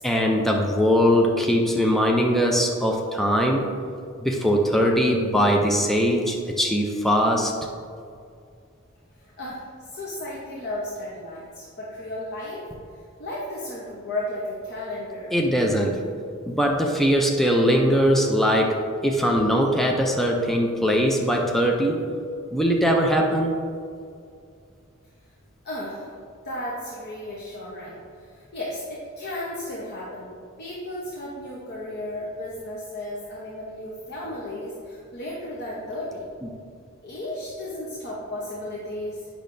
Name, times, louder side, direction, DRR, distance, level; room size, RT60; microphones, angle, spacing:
voice 1, 0.0-3.7 4.2-7.5 15.3-16.0 16.5-22.0 22.5-23.6, equal, ahead, 0 dB, 0.5 m, -21 dB
voice 2, 9.2-12.6 12.9-15.3 25.6-26.1 26.4-36.3 37.0-39.3, left 1 dB, 50° left, -5 dB, 0.9 m, -34 dB
8.5 x 5.9 x 2.6 m, 2.3 s
head